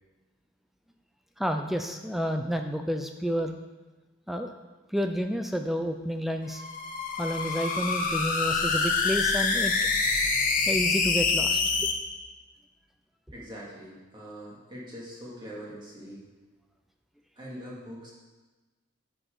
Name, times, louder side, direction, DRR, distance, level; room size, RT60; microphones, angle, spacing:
voice 1, 1.4-3.6 4.3-4.5 4.9-6.6 7.2-9.7 10.7-11.9, equal, ahead, 5 dB, 0.4 m, -30 dB
sound 1, 6.5-11.9, left 4 dB, 40° left, 0.8 m, -26 dB
voice 2, 13.3-16.3 17.4-18.1, equal, 20° right, -6 dB, 2.3 m, -43 dB
10.5 x 6.9 x 3.9 m, 1.2 s
head